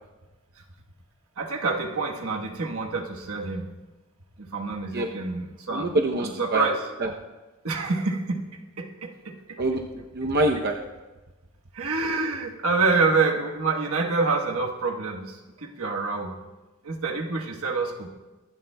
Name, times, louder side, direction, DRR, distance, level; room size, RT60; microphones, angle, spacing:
voice 1, 1.4-3.7 4.4-5.9 6.2-6.9 7.6-8.5 8.8-9.6 11.7-16.4 16.8-18.1, right 4 dB, 75° right, 2 dB, 1.3 m, -27 dB
voice 2, 5.7-6.7 7.0-7.1 9.6-10.8, right 1 dB, 50° right, 2 dB, 0.7 m, -25 dB
24.5 x 11.5 x 2.3 m, 1.1 s
head